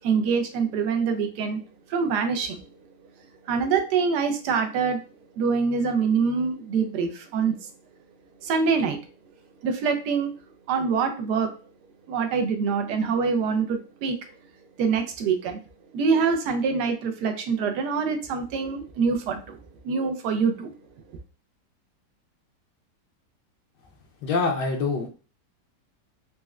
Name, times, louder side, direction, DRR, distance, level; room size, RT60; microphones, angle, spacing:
voice 1, 0.0-1.6 1.9-2.8 3.4-5.0 5.4-7.7 8.4-9.1 9.6-10.3 10.7-11.5 12.1-14.2 14.8-15.6 15.9-19.6 19.8-20.7, right 5 dB, 75° right, 6 dB, 1.1 m, -25 dB
voice 2, 24.2-25.1, left 4 dB, 75° left, 2 dB, 1.2 m, -25 dB
4.1 x 2.1 x 2.3 m, 0.36 s
omnidirectional pair, 1.9 m